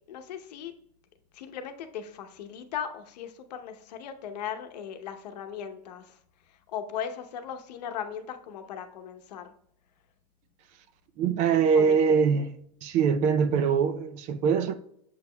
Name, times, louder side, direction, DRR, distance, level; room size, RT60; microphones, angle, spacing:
voice 1, 0.1-0.7 1.3-6.2 6.5-9.5 11.7-12.4, left 8 dB, 75° left, 0.9 m, -38 dB
voice 2, 11.2-12.5 12.8-14.7, right 6 dB, 35° right, 0.4 m, -23 dB
7.1 x 6.2 x 2.2 m
supercardioid pair, 145°, 21 cm